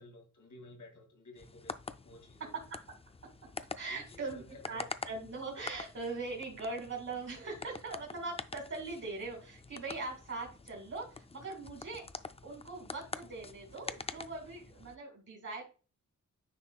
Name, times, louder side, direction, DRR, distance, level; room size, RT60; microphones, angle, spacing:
voice 1, 0.0-1.8 2.0-2.5 3.9-4.9, left 2 dB, 70° left, 4 dB, 2.2 m, -54 dB
sound 1, 1.4-15.0, left 4 dB, 20° left, 0.3 m, -46 dB
voice 2, 2.4-2.8 3.8-12.1 12.4-15.6, right 3 dB, 50° right, -1 dB, 2.1 m, -41 dB
9.8 x 4.4 x 2.3 m, 0.35 s
wide cardioid pair, 130°, 32 cm